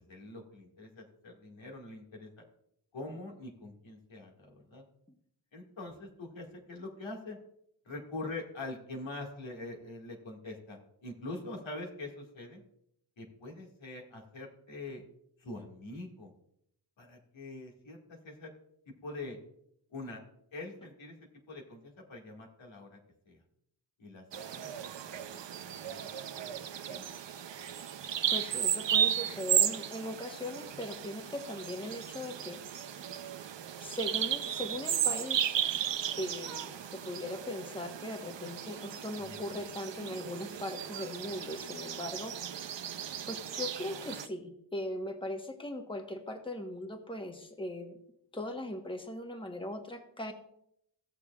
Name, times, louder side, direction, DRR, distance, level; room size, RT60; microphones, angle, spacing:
voice 1, 0.1-2.3 2.9-4.8 5.5-7.4 7.9-12.6 13.2-15.0 15.4-16.3 17.0-18.5 19.0-19.4 19.9-20.2 20.5-21.2 21.5-23.0 23.3-23.4 24.0-24.7 25.0-25.4 25.7-26.6 26.9-27.0 39.2-39.6, left 2 dB, 85° left, -1 dB, 2.0 m, -44 dB
Bird vocalization bird call bird song, 24.3-44.3, right 9 dB, 70° right, 0.7 m, -35 dB
voice 2, 28.3-32.9 33.8-35.5 36.2-42.7 43.3-48.0 48.3-50.3, left 1 dB, 10° left, 4 dB, 1.2 m, -39 dB
16.0 x 6.9 x 2.4 m, 0.73 s
wide cardioid pair, 70°, 45 cm